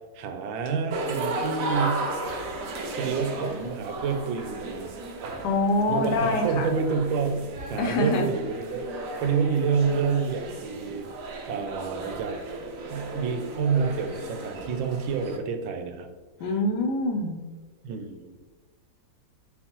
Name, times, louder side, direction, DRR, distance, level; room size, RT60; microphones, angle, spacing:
voice 1, 0.1-2.0 3.0-4.9 5.9-8.9 9.2-11.1 11.5-12.4 12.9-16.1 17.8-18.5, right 5 dB, 85° right, 7 dB, 1.4 m, -28 dB
sound 1, 0.9-15.4, right 3 dB, 70° right, 0.8 m, -35 dB
voice 2, 5.4-6.7 7.8-8.3 16.4-17.4, left 2 dB, 70° left, 4 dB, 1.1 m, -25 dB
4.3 x 3.9 x 2.9 m, 1.3 s
omnidirectional pair, 2.1 m